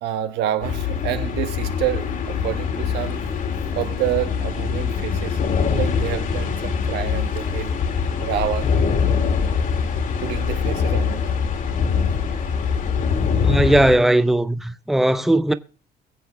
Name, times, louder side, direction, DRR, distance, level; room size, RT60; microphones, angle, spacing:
voice 1, 0.0-3.2 3.7-7.7 8.2-8.7 9.9-11.2, right 12 dB, 85° right, 1.4 m, -28 dB
sound 1, 0.6-14.0, left 6 dB, 50° left, 2.2 m, -23 dB
voice 2, 13.4-15.5, right 1 dB, ahead, 0.7 m, -18 dB
22.5 x 7.6 x 3.4 m
cardioid pair, 110°, 17 cm